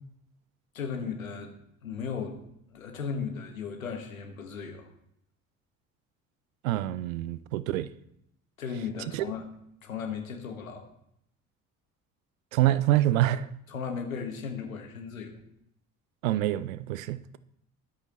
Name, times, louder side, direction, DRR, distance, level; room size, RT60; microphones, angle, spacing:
voice 1, 0.7-1.5 1.8-2.4 2.7-4.9 8.6-9.5 9.8-10.9 13.7-15.4, left 6 dB, 90° left, 1.7 m, -36 dB
voice 2, 6.6-7.9 9.1-9.2 12.5-13.5 16.2-17.4, right 14 dB, 80° right, 0.7 m, -26 dB
21.5 x 8.4 x 3.1 m
hypercardioid pair, 60°, 40 cm